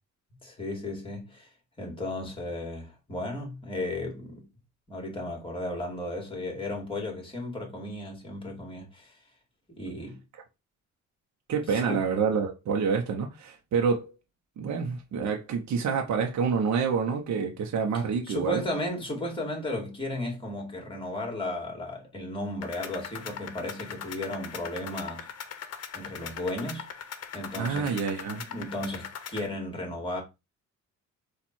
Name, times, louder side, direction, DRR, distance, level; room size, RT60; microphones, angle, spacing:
voice 1, 0.4-1.5 1.8-4.4 4.9-9.1 9.7-10.2 11.7-12.0 18.3-25.3 25.9-26.9 27.3-27.9 28.5-30.2, left 1 dB, 15° left, 2.2 m, -34 dB
voice 2, 11.5-14.1 14.6-18.6 27.5-28.4, right 6 dB, 65° right, 0.9 m, -27 dB
sound 1, 22.6-29.5, left 8 dB, 55° left, 0.8 m, -40 dB
4.3 x 2.5 x 4.4 m
cardioid pair, 90°, 30 cm